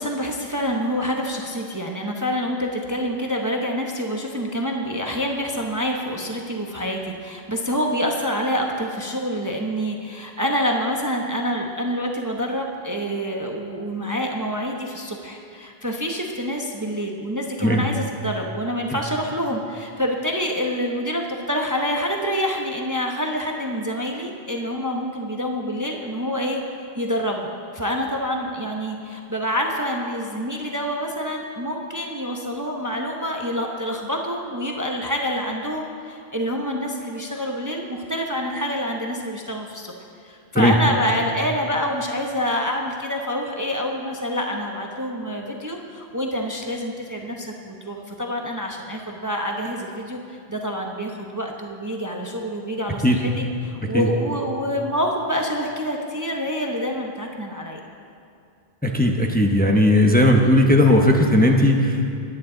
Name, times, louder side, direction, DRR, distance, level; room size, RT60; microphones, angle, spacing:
voice 1, 0.0-39.9 40.2-57.8, equal, 20° right, 1 dB, 0.8 m, -27 dB
voice 2, 58.8-62.1, left 1 dB, 10° left, 1 dB, 0.9 m, -17 dB
22.5 x 9.5 x 3.8 m, 2.4 s
omnidirectional pair, 1.0 m